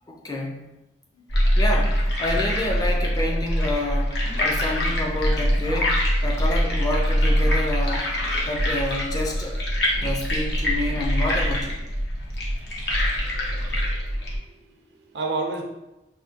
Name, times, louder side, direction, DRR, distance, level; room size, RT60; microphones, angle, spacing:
voice 1, 0.1-0.7 1.5-8.1 8.5-9.6 10.0-11.8, left 1 dB, 20° left, -1 dB, 0.5 m, -29 dB
sound 1, 1.3-14.4, equal, 70° left, 0.8 m, -23 dB
voice 2, 13.6-14.1 14.4-15.6, right 3 dB, 75° right, 2 dB, 0.6 m, -32 dB
4.8 x 2.3 x 2.8 m, 0.97 s
head